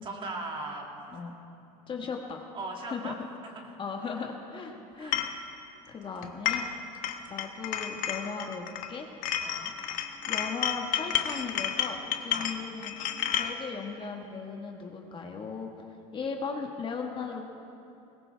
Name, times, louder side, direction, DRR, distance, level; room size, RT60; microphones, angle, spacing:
voice 1, 0.0-1.2 2.5-3.2 3.4-3.8 5.0-5.2 6.0-6.3 9.4-9.7 12.3-12.5, right 2 dB, 35° right, 0 dB, 2.4 m, -39 dB
voice 2, 1.9-2.4 2.9-3.2 3.8-5.3 5.9-6.7 7.3-9.1 9.9-13.0 13.3-15.7 16.1-17.4, left 5 dB, 35° left, 2 dB, 1.5 m, -37 dB
sound 1, 5.1-5.4 6.2-6.8 7.0-8.9 9.2-13.5, left 10 dB, 60° left, 1.1 m, -31 dB
21.0 x 17.5 x 3.4 m, 2.8 s
supercardioid pair, 115°, 16 cm